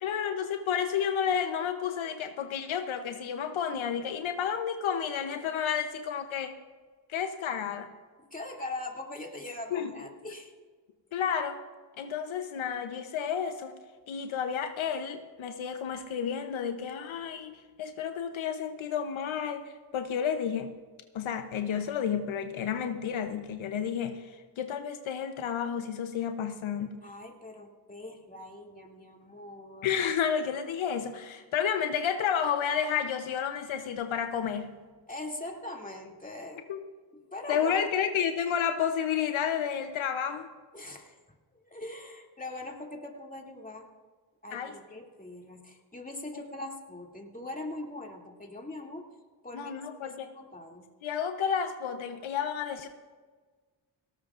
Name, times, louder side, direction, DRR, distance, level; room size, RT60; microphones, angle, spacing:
voice 1, 0.0-6.5 7.1-7.9 9.7-9.9 11.1-11.6 12.0-13.7 14.1-20.7 21.1-27.0 29.8-34.8 36.7-36.8 37.5-40.5 44.5-44.7 49.5-50.3 51.0-52.9, left 8 dB, 85° left, 7 dB, 0.9 m, -31 dB
voice 2, 8.2-10.5 27.0-29.9 35.1-36.6 37.3-37.9 40.7-41.2 41.5-43.9 44.4-49.1 49.4-50.1 50.3-50.9, left 2 dB, 15° left, 0 dB, 2.5 m, -41 dB
18.0 x 18.0 x 2.5 m, 1.4 s
supercardioid pair, 45°, 46 cm